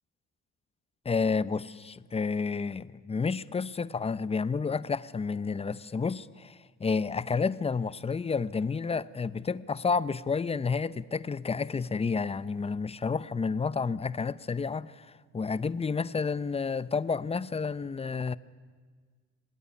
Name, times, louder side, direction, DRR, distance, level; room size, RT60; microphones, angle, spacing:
voice 1, 1.0-18.4, left 5 dB, 20° left, 0.7 m, -30 dB
25.5 x 18.5 x 9.8 m
cardioid pair, 105°, 29 cm